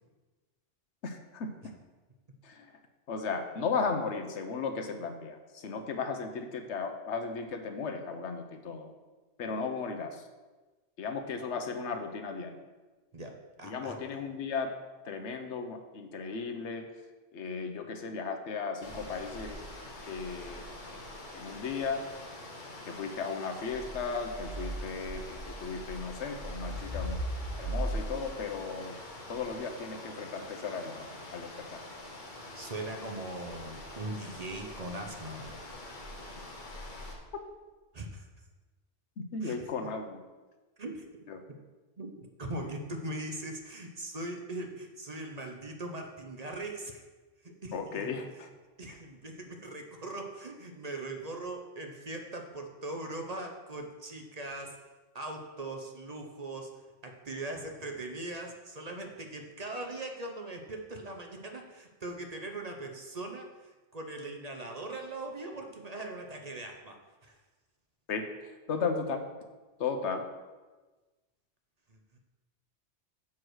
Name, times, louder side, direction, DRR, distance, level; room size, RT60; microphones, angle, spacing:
voice 1, 1.0-1.7 2.4-2.7 3.1-8.9 9.4-10.3 11.0-12.6 13.6-14.7 15.0-16.9 17.3-19.6 20.1-20.6 20.9-21.0 21.3-22.0 22.8-27.2 27.6-29.0 29.3-31.1 31.3-31.8 39.3-40.2 41.3-41.4 47.7-48.5 48.9-49.0 68.1-69.2 69.8-70.3, left 5 dB, 80° left, 6 dB, 1.1 m, -35 dB
voice 2, 13.1-14.2 32.5-35.5 37.9-38.3 39.4-39.9 40.8-41.0 41.5-41.6 42.0-47.0 47.4-48.1 48.8-54.8 55.1-56.7 57.0-67.0 67.2-67.4 71.9-72.2, right 2 dB, 40° right, 3 dB, 0.8 m, -40 dB
sound 1, 18.8-37.1, equal, 45° left, 1.3 m, -41 dB
7.2 x 4.8 x 6.2 m, 1.2 s
omnidirectional pair, 1.2 m